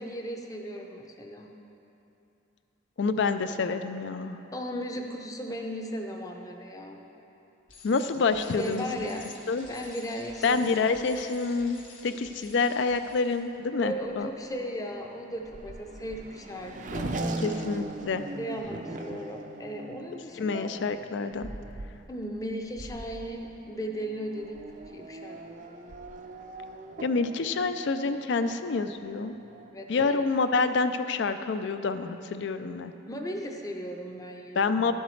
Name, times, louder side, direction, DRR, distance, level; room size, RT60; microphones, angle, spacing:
voice 1, 0.0-1.5 4.5-7.0 8.6-9.3 9.7-10.7 13.8-17.2 18.4-20.7 22.1-24.6 24.9-25.4 29.7-30.2 33.1-34.8, equal, 20° left, 2 dB, 0.6 m, -36 dB
voice 2, 3.0-4.4 7.8-9.0 9.5-9.7 10.4-14.3 17.4-18.2 20.4-21.5 27.0-29.4 29.9-32.9 34.6-34.9, left 4 dB, 65° left, 10 dB, 0.4 m, -27 dB
Bicycle, 7.7-13.4, left 3 dB, 90° left, 1.6 m, -50 dB
Race car auto racing / Accelerating revving vroom, 13.5-29.7, right 2 dB, 40° right, 0.4 m, -41 dB
12.5 x 8.0 x 3.2 m, 2.9 s
head